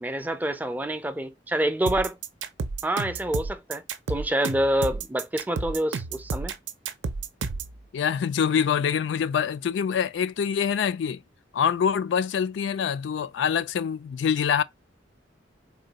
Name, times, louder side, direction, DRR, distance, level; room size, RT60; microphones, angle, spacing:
voice 1, 0.0-2.2 2.8-3.8 4.1-6.5, right 1 dB, 10° right, 0.4 m, -27 dB
sound 1, 1.9-7.7, right 4 dB, 85° right, 0.5 m, -31 dB
voice 2, 7.9-11.2 11.5-14.6, left 7 dB, 75° left, 0.3 m, -25 dB
3.7 x 2.2 x 3.9 m
head